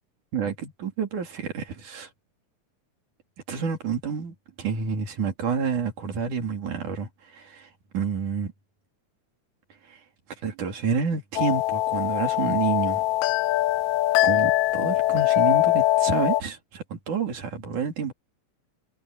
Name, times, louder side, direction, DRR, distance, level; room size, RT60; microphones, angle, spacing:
voice 1, 0.3-2.1 3.5-8.5 9.9-10.0 10.4-13.0 14.2-18.1, right 6 dB, 85° right, 4.7 m, -29 dB
sound 1, 11.4-16.4, left 16 dB, 80° left, 1.9 m, -22 dB
omnidirectional pair, 3.4 m